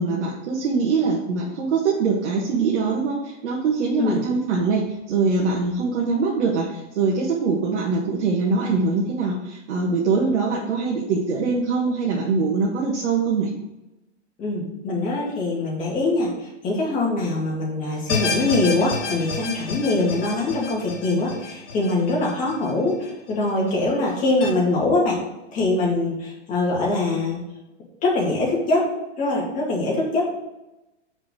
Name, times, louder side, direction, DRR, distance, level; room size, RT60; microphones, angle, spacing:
voice 1, 0.0-13.5, right 4 dB, 75° right, -3 dB, 1.7 m, -23 dB
voice 2, 14.4-25.2 25.5-27.4 28.0-28.8 29.2-30.2, left 2 dB, 20° left, -3 dB, 2.4 m, -23 dB
sound 1, 18.1-23.3 23.7-23.8 24.4-24.5, left 4 dB, 80° left, 3.0 m, -30 dB
5.3 x 5.2 x 6.3 m, 0.97 s
hypercardioid pair, 145°, 36 cm